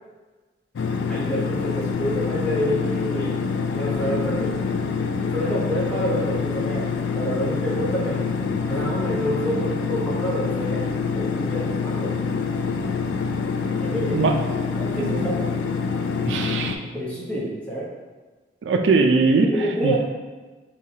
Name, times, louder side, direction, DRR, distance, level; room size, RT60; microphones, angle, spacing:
sound 1, 0.8-16.8, left 5 dB, 80° left, 0.3 m, -26 dB
voice 1, 1.1-3.3 3.7-4.5 5.3-6.9 7.1-8.2 8.5-10.8 11.2-12.1 13.8-14.3 14.7-15.5 16.9-17.8 19.5-20.0, right 1 dB, 5° left, -7 dB, 0.9 m, -28 dB
voice 2, 16.3-16.8 18.6-19.5 19.8-20.0, right 4 dB, 75° right, 4 dB, 0.4 m, -20 dB
4.8 x 2.9 x 2.7 m, 1.3 s
head